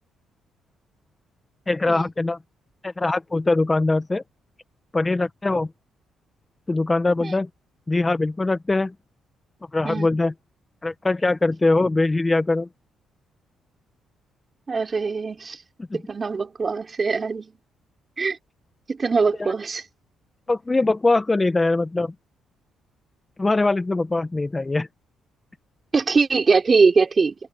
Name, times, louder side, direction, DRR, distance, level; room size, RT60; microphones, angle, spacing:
voice 1, 1.7-2.4 2.8-4.2 4.9-5.7 6.7-7.5 7.9-8.9 9.7-10.3 10.8-12.7 20.5-22.1 23.4-24.9, left 2 dB, 20° left, 1.2 m, -22 dB
voice 2, 14.7-15.6 15.9-17.5 18.2-18.4 18.9-19.8 25.9-27.4, right 4 dB, 35° right, 4.3 m, -22 dB
cardioid pair, 90°, 0 cm